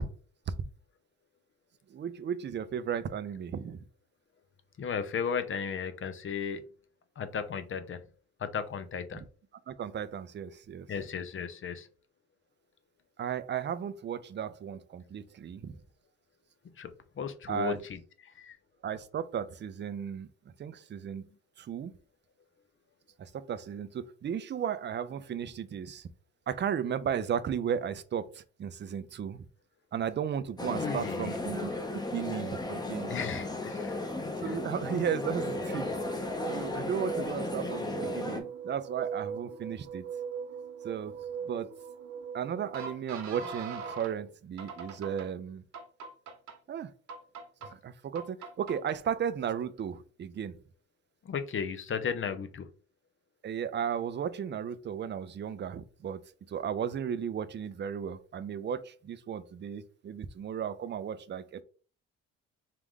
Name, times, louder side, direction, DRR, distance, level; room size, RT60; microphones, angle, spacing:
voice 1, 1.9-3.8 9.1-9.3 9.7-10.9 13.2-15.8 17.5-17.8 18.8-20.3 20.6-21.2 21.6-21.9 23.2-26.1 26.5-29.5 29.9-31.7 32.1-33.1 34.2-40.1 40.8-41.2 41.4-41.7 42.3-45.6 46.7-46.9 47.6-50.5 53.4-56.2 56.5-61.6, right 8 dB, 40° right, 0.5 m, -35 dB
voice 2, 4.8-6.6 7.2-8.0 8.4-9.2 10.9-11.9 16.8-18.6 30.7-31.4 33.1-33.9 34.4-34.6 51.2-52.7, left 6 dB, 40° left, 0.7 m, -35 dB
sound 1, 30.6-38.4, left 2 dB, 15° left, 0.9 m, -35 dB
sound 2, 35.2-44.1 44.6-45.3 45.7-46.5 47.1-47.7 48.2-49.0, right 6 dB, 65° right, 1.1 m, -40 dB
4.6 x 2.5 x 3.6 m
cardioid pair, 90°, 30 cm